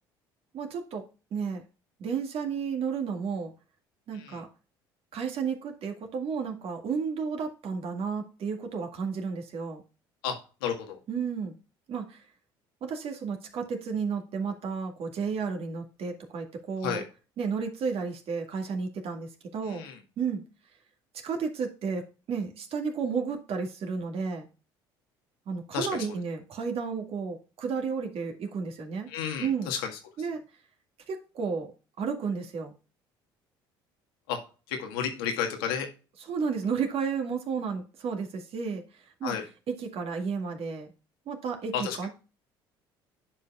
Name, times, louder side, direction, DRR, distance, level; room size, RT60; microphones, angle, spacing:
voice 1, 0.5-1.0 1.3-1.6 2.0-3.5 4.1-4.5 5.1-9.8 11.1-11.6 11.9-12.2 12.8-17.0 17.4-19.8 20.2-20.4 21.1-24.5 25.5-29.1 29.4-29.7 30.2-30.4 31.1-31.7 32.0-32.7 36.3-39.3 39.7-40.9 41.3-42.1, right 5 dB, 55° right, 3 dB, 2.0 m, -32 dB
voice 2, 10.2-11.0 16.8-17.0 19.6-20.0 25.7-26.1 29.1-30.3 34.3-34.4 34.7-35.9 39.2-39.4 41.7-42.0, left 7 dB, 80° left, 3 dB, 1.7 m, -32 dB
11.0 x 5.2 x 2.4 m, 0.33 s
hypercardioid pair, 65°, 12 cm